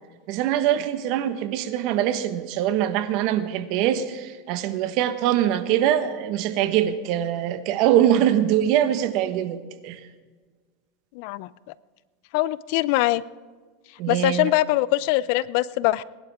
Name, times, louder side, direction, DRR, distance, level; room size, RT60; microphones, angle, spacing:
voice 1, 0.3-10.0 14.0-14.5, right 11 dB, 55° right, 10 dB, 1.2 m, -23 dB
voice 2, 11.1-11.5 12.3-13.2 14.1-16.0, left 17 dB, 60° left, 19 dB, 0.5 m, -22 dB
21.5 x 11.5 x 3.6 m, 1.4 s
supercardioid pair, 125°, 0 cm